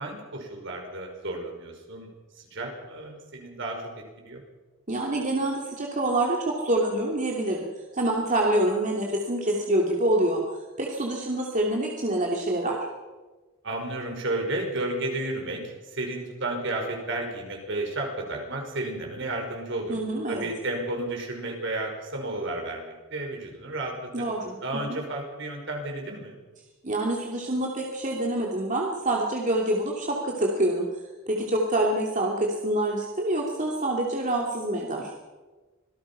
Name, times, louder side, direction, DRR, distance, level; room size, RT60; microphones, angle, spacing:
voice 1, 0.0-2.1 2.4-3.9 4.2-4.4 13.6-19.9 20.3-23.9 24.6-26.4, right 2 dB, 60° right, 2 dB, 5.5 m, -32 dB
voice 2, 4.9-7.6 7.9-10.4 10.8-12.8 19.9-20.5 24.1-25.0 26.8-30.9 31.3-35.1, right 1 dB, 40° right, -1 dB, 2.8 m, -26 dB
26.0 x 18.5 x 5.7 m, 1.2 s
head